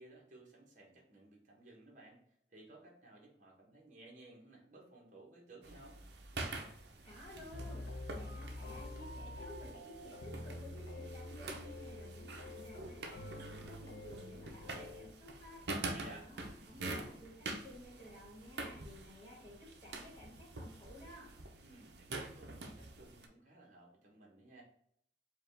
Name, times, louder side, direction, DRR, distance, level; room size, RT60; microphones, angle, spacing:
voice 1, 0.0-2.2 2.5-6.0 15.9-16.3 21.6-24.6, right 2 dB, 45° right, -1 dB, 1.1 m, -57 dB
sound 1, 5.6-23.3, right 2 dB, 65° right, 0.6 m, -47 dB
voice 2, 7.0-15.6 16.1-21.3, left 1 dB, 25° left, -7 dB, 1.3 m, -54 dB
sound 2, 7.5-15.1, left 1 dB, 85° left, 0.6 m, -47 dB
4.8 x 2.4 x 3.3 m, 0.67 s
head